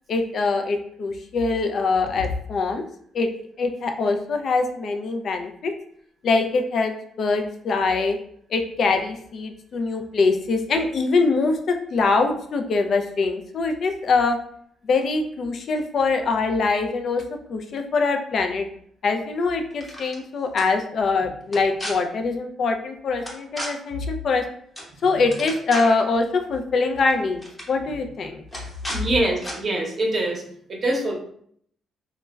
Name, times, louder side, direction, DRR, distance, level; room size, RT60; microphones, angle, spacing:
voice 1, 0.1-2.8 3.1-3.3 3.6-5.7 6.2-8.2 8.5-14.4 14.9-17.2 17.5-18.7 19.0-24.4 25.0-27.4 27.7-28.4, left 4 dB, 60° left, 5 dB, 0.3 m, -23 dB
sound 1, 19.7-20.2 20.6-20.7 21.5-21.9 23.3-23.7 24.8-24.9 25.2-26.0 27.0-27.1 27.4-27.7 28.5-29.0 29.4-29.6, equal, 15° left, 0.7 m, -33 dB
voice 2, 28.9-30.4 30.7-31.1, right 1 dB, 40° right, 0 dB, 0.7 m, -24 dB
3.2 x 2.1 x 2.2 m, 0.65 s
cardioid pair, 90°, 0 cm